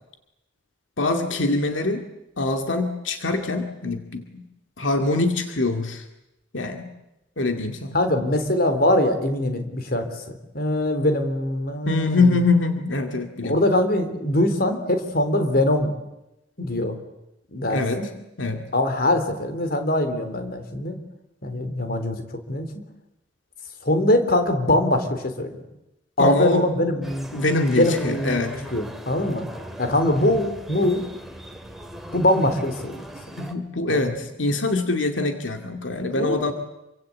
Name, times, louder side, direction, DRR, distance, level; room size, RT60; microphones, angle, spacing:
voice 1, 1.0-2.0 2.4-4.4 4.8-6.1 6.5-6.9 7.4-8.0 11.9-13.5 17.7-18.0 18.4-18.6 26.2-26.7 27.3-28.6 33.4-36.5, left 3 dB, 85° left, 5 dB, 2.2 m, -24 dB
voice 2, 7.9-12.2 13.4-15.9 16.6-17.0 17.5-18.1 18.7-21.0 21.4-22.2 22.5-22.7 23.8-25.6 26.2-27.3 27.7-28.4 28.7-29.5 29.8-31.0 32.1-33.0 33.9-34.2 36.1-36.5, left 1 dB, 50° left, 7 dB, 3.6 m, -22 dB
sound 1, 27.0-33.5, equal, ahead, 2.6 m, -39 dB
27.5 x 24.0 x 8.6 m, 0.91 s
head